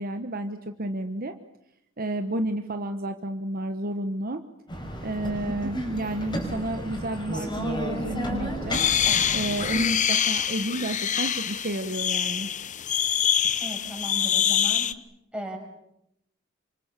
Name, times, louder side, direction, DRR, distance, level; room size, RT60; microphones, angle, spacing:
voice 1, 0.0-1.3 2.0-4.4 5.0-8.8 9.3-12.5, right 1 dB, 45° right, 7 dB, 1.2 m, -31 dB
sound 1, 4.7-9.9, equal, 25° left, 5.8 m, -32 dB
sound 2, 8.7-14.9, left 9 dB, 40° left, 0.9 m, -25 dB
voice 2, 13.6-14.9 15.3-15.6, equal, 5° right, 0 dB, 6.3 m, -36 dB
27.0 x 25.0 x 6.8 m, 0.80 s
head